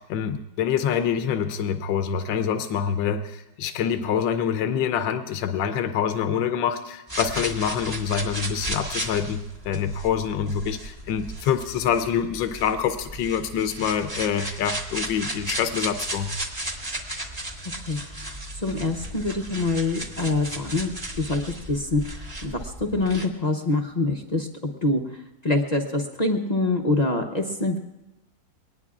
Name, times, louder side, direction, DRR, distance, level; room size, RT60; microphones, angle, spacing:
voice 1, 0.0-16.3, left 8 dB, 85° left, 7 dB, 1.4 m, -26 dB
sound 1, 7.1-23.3, right 1 dB, 20° right, 1.4 m, -35 dB
voice 2, 17.9-20.9 21.2-21.4 21.7-24.5 24.8-25.0 25.4-27.8, left 2 dB, 45° left, 2 dB, 0.5 m, -25 dB
22.5 x 19.0 x 2.4 m, 0.96 s
omnidirectional pair, 2.0 m